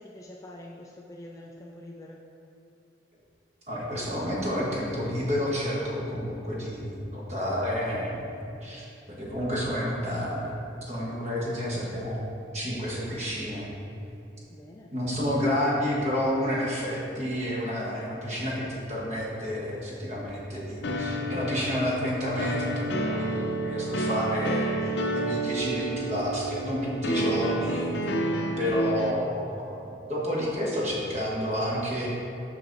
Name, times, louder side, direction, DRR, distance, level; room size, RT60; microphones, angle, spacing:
voice 1, 0.0-2.2 14.5-14.9, left 1 dB, 15° left, -1 dB, 0.3 m, -45 dB
voice 2, 3.7-12.2 12.5-13.7 14.9-27.9 28.6-32.1, equal, 35° right, -5 dB, 1.3 m, -30 dB
sound 1, 20.8-29.1, right 1 dB, 65° left, 0.6 m, -29 dB
6.0 x 5.8 x 4.0 m, 2.8 s
head